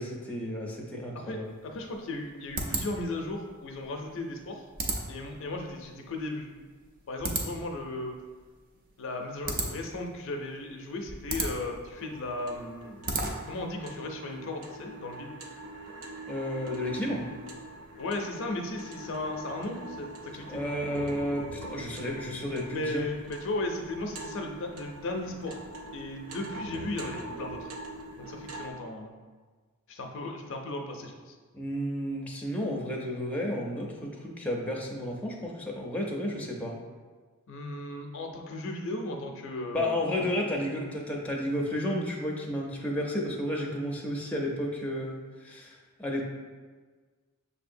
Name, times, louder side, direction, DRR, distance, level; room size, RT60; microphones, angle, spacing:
voice 1, 0.0-1.5 16.3-17.3 20.5-23.0 31.5-36.8 39.7-46.2, left 1 dB, 5° left, -2 dB, 0.5 m, -32 dB
voice 2, 1.3-4.6 5.1-6.5 7.1-8.1 9.0-13.0 13.5-15.4 18.0-20.6 22.7-25.6 25.9-27.7 28.2-29.1 29.9-31.4 37.5-40.3, left 2 dB, 65° left, 3 dB, 0.5 m, -36 dB
sound 1, 1.5-13.7, right 2 dB, 45° right, 0.5 m, -37 dB
sound 2, 12.0-28.7, right 2 dB, 90° right, 0.5 m, -43 dB
6.3 x 2.7 x 2.6 m, 1.4 s
head